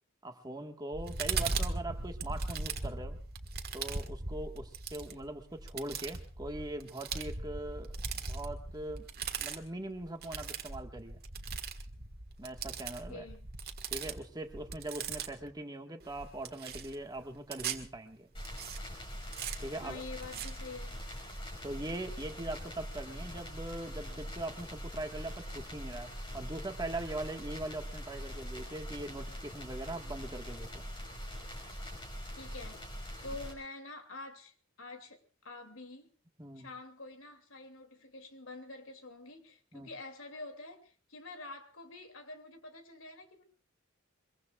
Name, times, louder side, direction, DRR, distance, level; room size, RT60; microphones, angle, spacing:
voice 1, 0.2-3.2 3.7-9.1 9.4-11.2 12.4-13.2 13.9-18.3 19.6-20.0 21.6-30.8 36.4-36.7 39.7-39.9, right 1 dB, 20° right, 1.7 m, -41 dB
sound 1, 0.9-15.5 16.0-17.9 18.4-18.8 19.3-19.6 20.2-20.5, right 4 dB, 50° right, 1.7 m, -39 dB
voice 2, 13.1-13.5 19.8-21.0 32.4-32.8 33.2-36.1 36.6-43.4, left 2 dB, 75° left, 2.8 m, -47 dB
sound 2, 18.3-33.5, equal, 25° left, 5.7 m, -43 dB
24.0 x 22.5 x 2.5 m
head